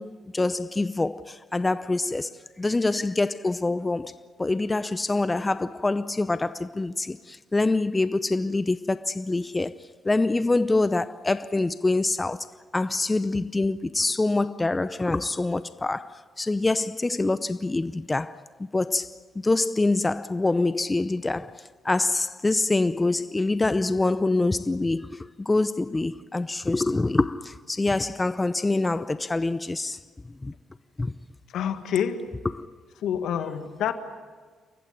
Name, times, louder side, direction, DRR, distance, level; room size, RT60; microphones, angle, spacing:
voice 1, 0.0-4.1 4.4-12.5 12.7-18.4 18.7-30.0 30.4-30.5 31.0-31.1 32.5-32.7, left 2 dB, 20° left, 0.7 m, -25 dB
voice 2, 31.5-32.3 33.0-33.9, left 8 dB, 75° left, 1.8 m, -27 dB
29.0 x 15.0 x 9.6 m
supercardioid pair, 60°, 0 cm